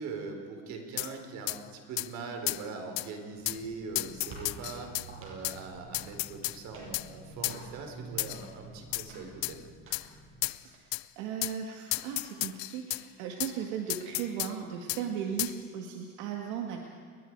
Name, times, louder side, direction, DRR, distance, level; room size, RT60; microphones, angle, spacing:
voice 1, 0.0-4.9 5.2-9.6, right 4 dB, 60° right, 3 dB, 4.2 m, -41 dB
sound 1, 1.0-1.1 1.5-1.6 2.0-2.1 2.5-2.6 3.0-3.1 3.5-3.6 4.0-5.1 5.4-5.6 5.9-6.6 6.9-7.1 7.4-7.6 8.2-8.5 8.9-9.1 9.4-9.6 9.9-10.1 10.4-10.6 10.9-11.0 11.4-11.6 11.9-13.0 13.4-13.5 13.9-14.5 14.9-15.0 15.4-15.6, left 22 dB, 65° left, 0.6 m, -33 dB
sound 2, 3.2-10.7, right 3 dB, 40° right, 8.0 m, -49 dB
voice 2, 10.6-16.8, right 8 dB, 80° right, 2 dB, 2.1 m, -37 dB
29.0 x 21.5 x 4.8 m, 2.1 s
cardioid pair, 140°, 32 cm